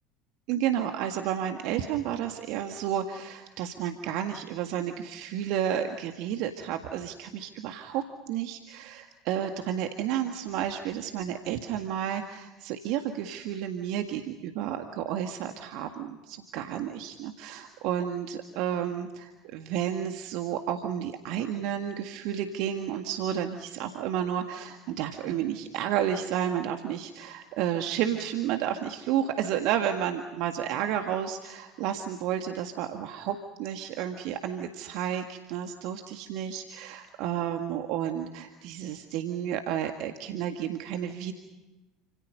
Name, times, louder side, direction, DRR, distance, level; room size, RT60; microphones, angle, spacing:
voice 1, 0.5-41.3, right 10 dB, 55° right, 5 dB, 1.8 m, -31 dB
30.0 x 27.0 x 5.5 m, 1.1 s
figure-of-eight pair, 70°, 0 cm